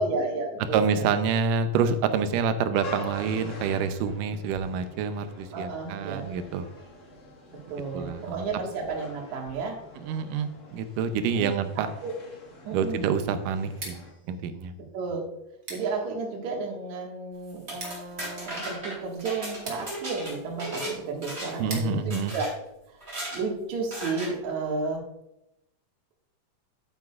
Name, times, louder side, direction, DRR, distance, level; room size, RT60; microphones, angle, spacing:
voice 1, 0.0-1.1 5.5-6.3 7.7-9.8 11.3-12.1 12.6-13.1 14.9-15.2 15.7-22.5 23.3-25.0, right 4 dB, 60° right, -1 dB, 2.8 m, -32 dB
voice 2, 0.7-6.7 7.9-8.4 10.0-11.9 12.7-14.7 21.6-22.4, right 6 dB, 80° right, 9 dB, 2.2 m, -27 dB
sound 1, 2.8-14.1, left 2 dB, 45° left, 0.9 m, -46 dB
Scissors, 13.6-23.5, right 2 dB, 35° right, 2.6 m, -47 dB
sound 2, 17.5-20.9 21.2-21.7 22.1-22.5 23.0-23.4 23.9-24.3, right 1 dB, 20° right, 3.2 m, -36 dB
10.5 x 9.0 x 2.4 m, 0.85 s
omnidirectional pair, 4.0 m